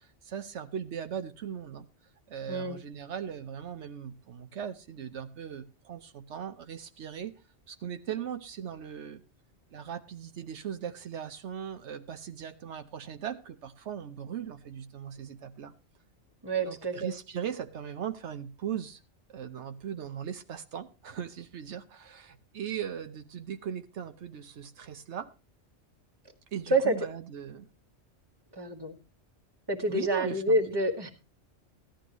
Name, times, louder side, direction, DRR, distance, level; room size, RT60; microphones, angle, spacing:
voice 1, 0.0-1.9 2.3-7.3 7.7-9.2 9.7-15.7 16.6-19.0 19.3-25.3 26.5-27.7 29.9-30.6, right 8 dB, 80° right, 8 dB, 1.1 m, -39 dB
voice 2, 2.5-2.8 16.4-17.1 26.7-26.9 28.6-29.0 29.7-31.1, right 1 dB, 20° right, 6 dB, 1.4 m, -28 dB
15.5 x 11.5 x 3.0 m, 0.29 s
omnidirectional pair, 1.2 m